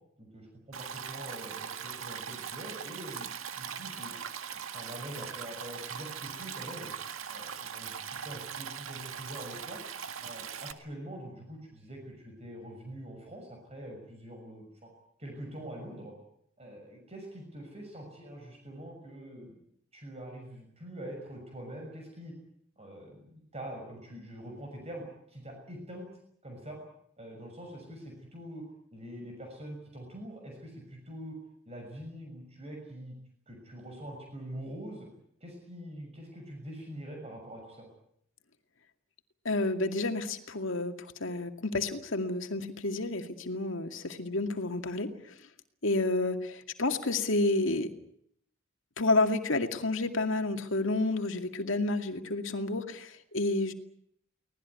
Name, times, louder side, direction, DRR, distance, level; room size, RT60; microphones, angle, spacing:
voice 1, 0.2-4.1 4.5-6.9 7.3-9.8 10.2-14.9 15.2-16.1 16.6-19.6 19.9-22.3 22.8-26.1 26.4-26.8 27.2-31.4 31.6-33.2 33.5-35.1 35.4-37.8, right 1 dB, 30° right, 1 dB, 6.5 m, -44 dB
Stream, 0.7-10.7, right 7 dB, 85° right, 1.9 m, -40 dB
voice 2, 39.4-45.1 45.8-47.9 49.0-53.7, left 2 dB, 70° left, 6 dB, 2.3 m, -30 dB
24.5 x 19.0 x 9.6 m, 0.71 s
head